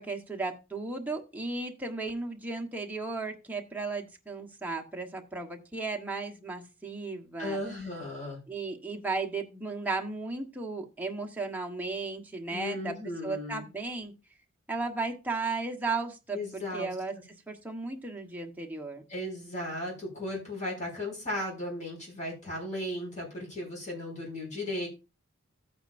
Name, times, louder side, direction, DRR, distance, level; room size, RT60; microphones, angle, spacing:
voice 1, 0.0-7.6 8.5-12.9 13.2-14.1 14.7-17.1 17.5-19.0, right 3 dB, 10° right, 1 dB, 1.3 m, -35 dB
voice 2, 7.4-8.4 12.5-13.6 16.3-16.9 19.1-24.9, left 1 dB, 35° left, -2 dB, 6.5 m, -36 dB
14.0 x 8.9 x 2.6 m, 0.29 s
head